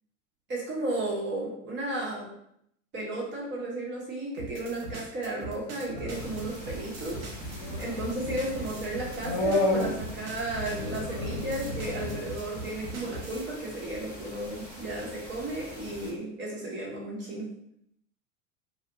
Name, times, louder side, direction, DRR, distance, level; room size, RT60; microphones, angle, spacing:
voice 1, 0.5-2.3 2.9-7.3 7.8-17.5, right 1 dB, 25° right, -4 dB, 1.0 m, -34 dB
sound 1, 4.4-13.5, right 3 dB, 80° right, 0.7 m, -41 dB
sound 2, 5.9-12.2, left 2 dB, 55° left, 0.8 m, -32 dB
sound 3, 6.1-16.1, left 1 dB, 5° left, 1.2 m, -45 dB
2.4 x 2.1 x 2.5 m, 0.72 s
hypercardioid pair, 85°, 41 cm